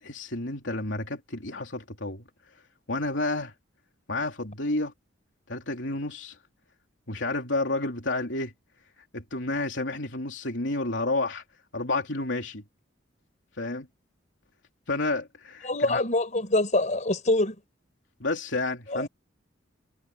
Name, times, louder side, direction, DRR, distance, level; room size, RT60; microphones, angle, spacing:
voice 1, 0.0-2.2 2.9-3.5 4.1-4.9 5.5-6.3 7.1-8.5 9.1-11.4 11.7-12.6 13.6-13.9 14.9-16.0 18.2-19.1, left 2 dB, 70° left, 3.4 m, -30 dB
voice 2, 15.6-17.5 18.9-19.0, left 2 dB, 40° left, 5.1 m, -25 dB
head